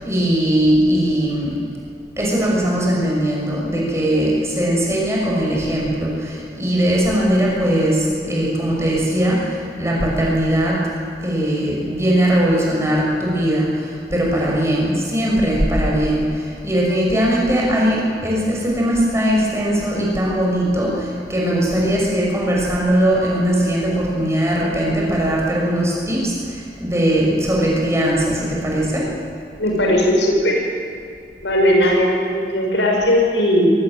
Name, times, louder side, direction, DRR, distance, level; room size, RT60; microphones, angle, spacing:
voice 1, 0.0-1.6 2.2-10.9 11.2-29.1, right 1 dB, 15° right, -3 dB, 6.2 m, -19 dB
voice 2, 29.6-30.6 31.4-33.7, equal, 85° left, 0 dB, 5.8 m, -17 dB
22.5 x 18.0 x 9.0 m, 2.4 s
head